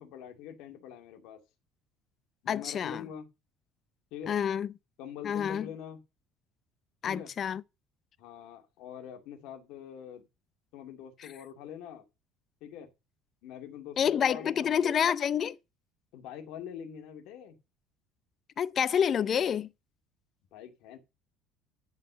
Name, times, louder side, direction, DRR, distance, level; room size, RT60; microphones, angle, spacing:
voice 1, 0.0-1.4 2.4-3.3 4.1-4.4 5.0-6.0 7.0-7.3 8.2-10.2 10.7-12.0 12.6-12.9 13.4-14.8 16.1-17.6 20.5-21.0, left 8 dB, 70° left, 2.3 m, -44 dB
voice 2, 2.5-3.0 4.3-4.7 5.2-5.7 7.0-7.6 14.0-15.6 18.6-19.7, left 8 dB, 35° left, 0.5 m, -28 dB
10.5 x 5.6 x 6.8 m
cardioid pair, 150°, 0 cm